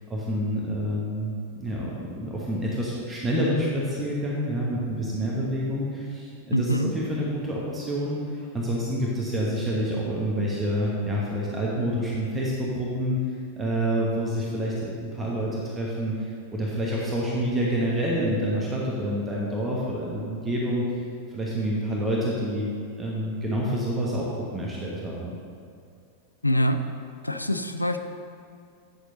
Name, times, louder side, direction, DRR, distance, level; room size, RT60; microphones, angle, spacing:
voice 1, 0.1-1.3 1.6-21.0 21.3-22.7 23.0-25.4, equal, 15° right, -5 dB, 1.2 m, -28 dB
voice 2, 6.5-6.9 26.4-26.8 27.2-28.0, left 1 dB, 85° left, 8 dB, 0.4 m, -24 dB
8.8 x 6.5 x 3.9 m, 2.3 s
figure-of-eight pair, 90°, 0 cm